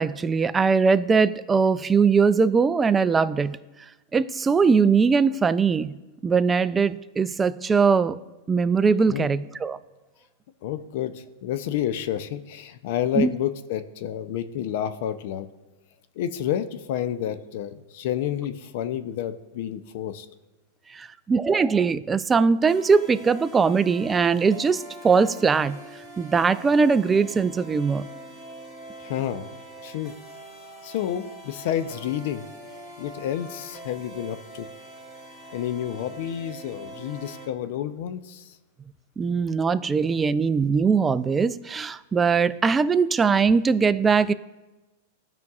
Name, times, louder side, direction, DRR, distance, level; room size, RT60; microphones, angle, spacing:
voice 1, 0.0-3.6 4.1-5.9 6.2-8.2 8.5-9.8 13.2-13.3 20.9-25.8 26.2-28.1 39.2-44.3, right 5 dB, 15° right, 14 dB, 0.3 m, -21 dB
voice 2, 10.6-15.5 16.2-20.3 29.0-29.5 29.8-30.1 30.8-32.4 33.0-34.7 35.5-38.4, left 10 dB, 60° left, 12 dB, 0.5 m, -29 dB
sound 1, 22.7-37.5, right 1 dB, 10° left, 2.2 m, -43 dB
15.5 x 5.3 x 2.4 m, 1.1 s
hypercardioid pair, 125°, 0 cm